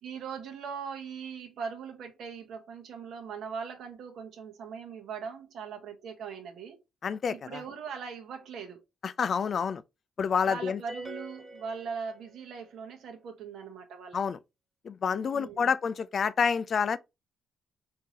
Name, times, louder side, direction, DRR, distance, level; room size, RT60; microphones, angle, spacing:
voice 1, 0.0-6.8 7.3-8.8 10.4-14.2 15.1-15.7, right 6 dB, 75° right, 1.0 m, -40 dB
voice 2, 7.0-7.6 9.0-9.8 10.2-10.8 14.1-14.4 14.8-17.0, left 6 dB, 50° left, 0.3 m, -28 dB
sound 1, 10.9-12.6, right 1 dB, 10° right, 1.5 m, -44 dB
3.7 x 2.7 x 2.8 m
cardioid pair, 90°, 0 cm